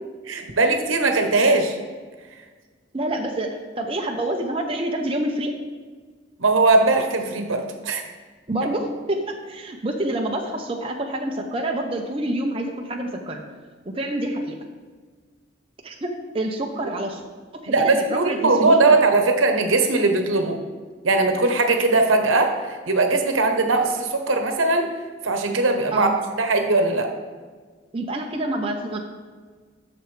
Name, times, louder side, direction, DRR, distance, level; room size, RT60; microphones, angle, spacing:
voice 1, 0.2-1.8 6.4-8.0 17.7-20.6 21.0-24.9 25.2-26.1 26.4-27.1, right 3 dB, 80° right, 5 dB, 1.0 m, -20 dB
voice 2, 2.9-5.5 8.5-13.4 13.8-14.6 15.8-16.1 16.3-17.2 17.5-19.0 25.9-26.1 27.9-29.0, right 1 dB, 25° right, 1 dB, 0.6 m, -27 dB
11.0 x 6.9 x 3.2 m, 1.5 s
head